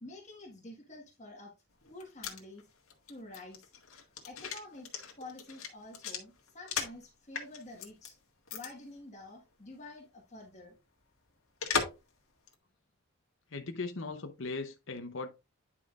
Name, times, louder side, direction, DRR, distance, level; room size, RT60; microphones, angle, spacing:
voice 1, 0.0-1.5 1.9-2.7 3.1-3.7 4.2-4.9 5.2-8.2 8.5-10.8, left 2 dB, 35° left, 1.5 m, -49 dB
sound 1, 1.8-7.0 7.3-8.1 8.5-8.7 9.0-9.1 11.6-12.1 12.5-12.6, left 6 dB, 80° left, 1.7 m, -37 dB
voice 2, 13.5-15.3, left 3 dB, 65° left, 0.8 m, -38 dB
9.6 x 5.6 x 2.5 m
head